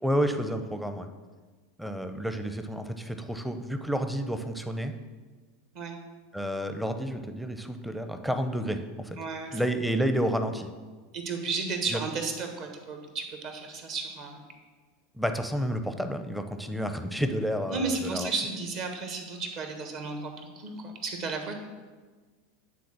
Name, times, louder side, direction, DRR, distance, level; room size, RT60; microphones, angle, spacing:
voice 1, 0.0-1.1 1.8-4.9 6.3-9.2 9.5-10.7 11.9-12.0 15.2-18.3, equal, ahead, 8 dB, 0.6 m, -30 dB
voice 2, 9.1-9.6 11.1-14.4 17.7-21.6, right 4 dB, 50° right, 4 dB, 1.4 m, -33 dB
9.2 x 3.9 x 6.1 m, 1.4 s
figure-of-eight pair, 85°, 0 cm